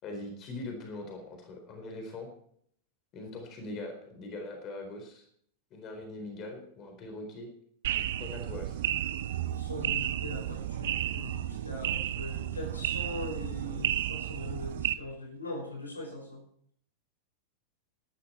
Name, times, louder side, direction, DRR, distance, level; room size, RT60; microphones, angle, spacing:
voice 1, 0.0-2.3 3.1-5.3 5.7-7.5 8.2-8.8, left 2 dB, 35° left, 4 dB, 4.2 m, -41 dB
sound 1, 7.8-14.9, right 12 dB, 55° right, 0.7 m, -32 dB
voice 2, 9.5-16.4, left 2 dB, 80° left, 2 dB, 5.3 m, -41 dB
17.0 x 12.5 x 4.5 m, 0.65 s
figure-of-eight pair, 90°, 0 cm